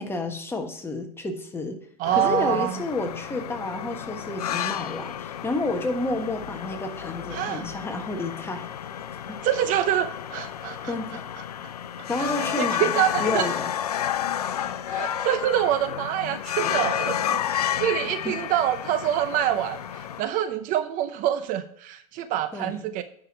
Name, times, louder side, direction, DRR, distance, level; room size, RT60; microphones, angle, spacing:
voice 1, 0.0-1.8 2.1-8.7 9.3-9.4 10.9-11.2 12.1-12.9 13.2-13.7 18.2-18.3 22.5-22.8, left 2 dB, 10° left, 4 dB, 1.5 m, -30 dB
sound 1, 2.0-20.2, left 10 dB, 85° left, 0.6 m, -31 dB
voice 2, 2.0-2.7 7.3-7.7 9.4-10.9 12.2-13.5 14.9-23.0, right 11 dB, 45° right, 10 dB, 0.8 m, -26 dB
9.9 x 5.9 x 4.5 m, 0.65 s
hypercardioid pair, 105°, 19 cm